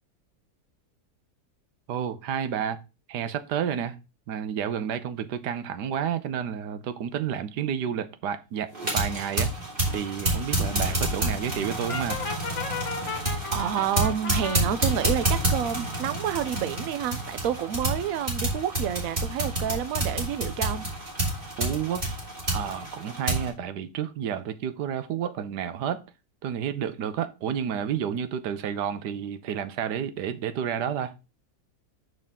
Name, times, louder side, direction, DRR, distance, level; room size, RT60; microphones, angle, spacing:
voice 1, 1.9-2.8 3.1-4.0 4.3-8.7 8.9-9.5 9.9-12.2 21.6-22.2 22.5-26.0 26.4-31.1, right 8 dB, 90° right, 1.4 m, -30 dB
sound 1, 8.7-23.5, right 1 dB, 30° right, 2.9 m, -29 dB
Brass instrument, 11.9-14.6, left 6 dB, 50° left, 1.2 m, -34 dB
voice 2, 13.2-20.9, right 10 dB, 65° right, 1.0 m, -29 dB
6.6 x 6.2 x 3.6 m
omnidirectional pair, 1.7 m